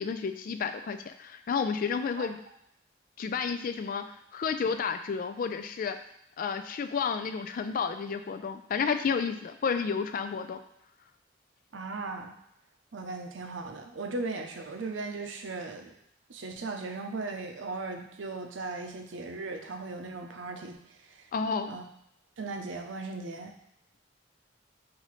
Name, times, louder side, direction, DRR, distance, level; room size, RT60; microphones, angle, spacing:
voice 1, 0.0-2.4 3.2-4.0 4.3-6.0 6.4-10.6 21.3-21.8, left 5 dB, 50° left, 9 dB, 0.3 m, -31 dB
voice 2, 11.7-12.3 12.9-15.9 16.3-20.8 21.7-21.8 22.4-23.5, right 3 dB, 85° right, 5 dB, 0.6 m, -37 dB
5.6 x 2.6 x 3.1 m, 0.77 s
head